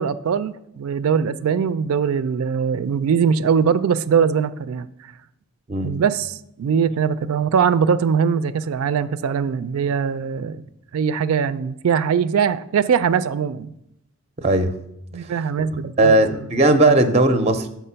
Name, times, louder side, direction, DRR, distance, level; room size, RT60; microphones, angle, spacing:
voice 1, 0.0-4.9 5.8-10.6 10.9-13.7 15.1-16.2, right 7 dB, 85° right, 13 dB, 0.4 m, -21 dB
voice 2, 14.4-14.7 15.2-15.3 16.0-17.7, right 2 dB, 30° right, 8 dB, 0.5 m, -17 dB
6.6 x 4.6 x 5.6 m, 0.77 s
head